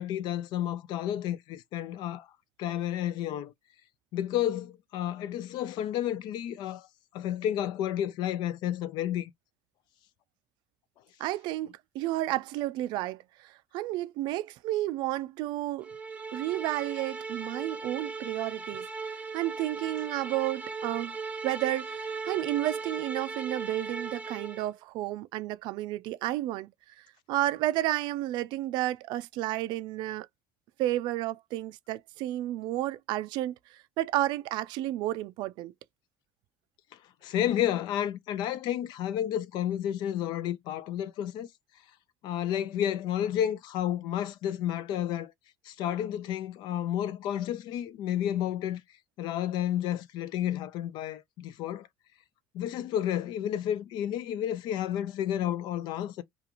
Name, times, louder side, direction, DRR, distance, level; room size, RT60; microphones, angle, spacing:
voice 1, 0.0-2.3 2.6-3.5 4.1-6.9 7.1-9.3 37.2-41.5 42.2-45.3 45.6-48.8 49.2-51.9 52.5-56.2, left 11 dB, 75° left, 0.4 m, -31 dB
voice 2, 11.2-15.9 16.3-21.2 21.4-30.3 30.8-35.7, right 15 dB, 80° right, 0.3 m, -32 dB
sound 1, 15.8-24.7, right 4 dB, 15° right, 0.5 m, -38 dB
2.9 x 2.4 x 2.4 m
cardioid pair, 120°, 8 cm